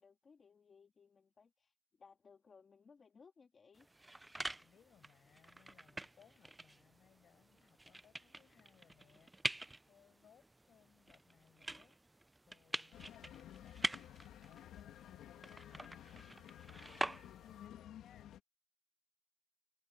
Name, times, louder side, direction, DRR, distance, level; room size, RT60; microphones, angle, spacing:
voice 1, 0.0-3.9, left 5 dB, 40° left, 1.8 m, -63 dB
sound 1, 3.7-17.7, right 2 dB, 15° right, 0.4 m, -46 dB
voice 2, 4.6-13.2 13.6-18.4, left 9 dB, 65° left, 6.9 m, -69 dB
sound 2, 12.9-18.4, left 11 dB, 80° left, 1.7 m, -54 dB
cardioid pair, 90°, 0 cm